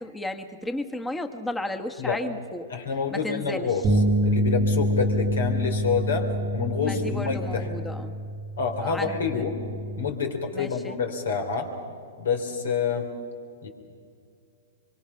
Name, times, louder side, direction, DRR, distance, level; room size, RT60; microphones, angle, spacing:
voice 1, 0.0-2.7 3.1-3.7 6.8-8.1 8.8-9.4 10.5-11.0, left 1 dB, 10° left, 7 dB, 1.4 m, -34 dB
voice 2, 2.7-3.8 4.2-7.7 8.6-9.5 10.0-11.7 12.2-13.1 13.6-13.7, left 5 dB, 80° left, 5 dB, 3.6 m, -27 dB
sound 1, 3.8-10.1, equal, 25° right, 1.2 m, -26 dB
24.5 x 23.5 x 5.8 m, 2.3 s
hypercardioid pair, 120°, 0 cm